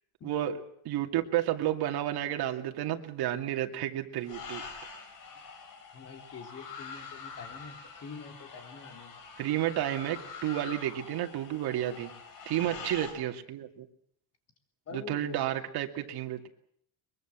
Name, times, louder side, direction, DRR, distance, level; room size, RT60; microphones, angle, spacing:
voice 1, 0.2-0.6 0.8-4.6 9.4-12.1 12.5-13.9 14.9-16.5, right 12 dB, 70° right, 4 dB, 2.5 m, -31 dB
sound 1, 4.2-13.1, left 5 dB, 55° left, 6.1 m, -45 dB
voice 2, 5.9-9.2 12.6-12.9 14.9-15.5, left 5 dB, 40° left, 5 dB, 3.7 m, -46 dB
23.0 x 23.0 x 7.6 m, 0.66 s
cardioid pair, 155°, 39 cm